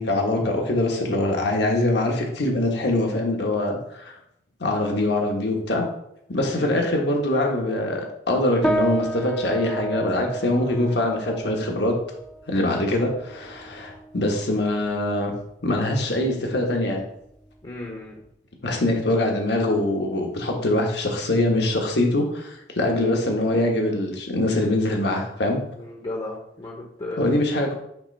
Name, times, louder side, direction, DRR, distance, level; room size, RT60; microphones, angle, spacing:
voice 1, 0.0-4.1 4.6-5.9 6.3-12.0 12.5-15.3 15.6-17.0 18.6-25.6 27.2-27.7, left 1 dB, 70° left, 1 dB, 1.2 m, -23 dB
sound 1, 8.6-18.3, right 1 dB, 5° left, 0.5 m, -32 dB
voice 2, 17.6-18.1 25.8-27.3, left 2 dB, 30° left, 0 dB, 0.8 m, -34 dB
5.9 x 3.0 x 5.4 m, 0.76 s
head